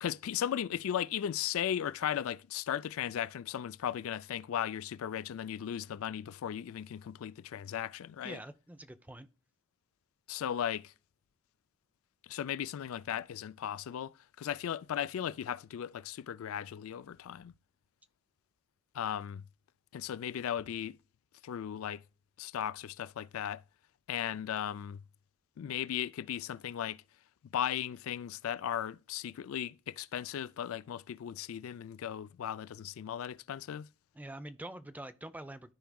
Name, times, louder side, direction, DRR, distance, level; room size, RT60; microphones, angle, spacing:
voice 1, 0.0-8.4 10.3-10.9 12.2-17.5 18.9-19.4 19.9-21.0 21.4-22.0 22.4-23.6 24.1-25.0 25.6-27.0 27.5-33.9, left 9 dB, 75° left, 0.3 m, -36 dB
voice 2, 8.2-9.3 34.1-35.7, right 1 dB, 5° right, 0.4 m, -45 dB
13.5 x 4.7 x 2.3 m
head